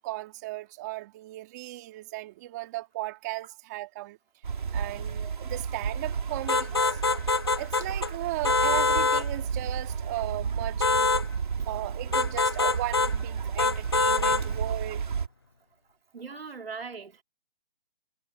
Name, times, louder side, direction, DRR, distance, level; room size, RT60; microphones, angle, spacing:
voice 1, 0.0-4.2 4.7-7.0 7.6-11.2 11.7-15.0, right 18 dB, 20° right, 2.5 m, -36 dB
sound 1, 4.4-15.3, right 6 dB, 55° right, 3.9 m, -32 dB
sound 2, 6.5-8.1 8.4-9.3 10.8-11.3 12.1-13.1 13.6-14.5, left 4 dB, 25° left, 0.5 m, -24 dB
voice 2, 16.1-17.2, right 5 dB, 80° right, 3.1 m, -40 dB
hypercardioid pair, 170°, 29 cm